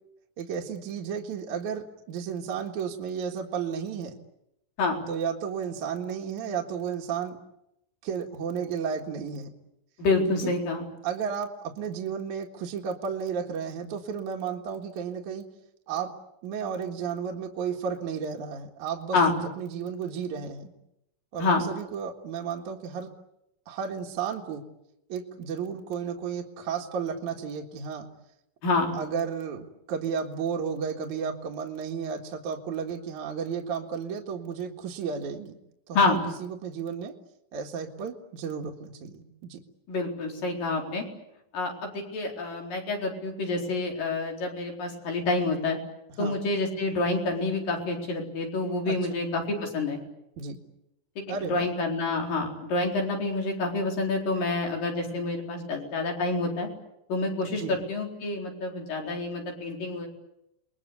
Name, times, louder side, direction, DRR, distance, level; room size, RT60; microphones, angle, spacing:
voice 1, 0.4-4.2 5.1-7.4 8.0-9.5 10.4-10.5 11.0-15.5 15.9-16.1 16.4-20.7 21.3-23.1 23.7-24.6 25.1-28.1 28.9-35.5 35.9-37.1 37.5-39.6 46.2-46.4 48.9-49.2 50.4-50.6 51.3-51.7 57.5-57.8, right 6 dB, 60° right, 1 dB, 3.0 m, -33 dB
voice 2, 10.0-10.9 19.1-19.4 21.4-21.7 28.6-28.9 36.0-36.3 39.9-41.0 41.5-45.8 46.2-50.0 51.2-56.7 57.1-60.1, left 3 dB, 70° left, 1 dB, 6.0 m, -28 dB
30.0 x 21.5 x 8.3 m, 0.85 s
omnidirectional pair, 4.0 m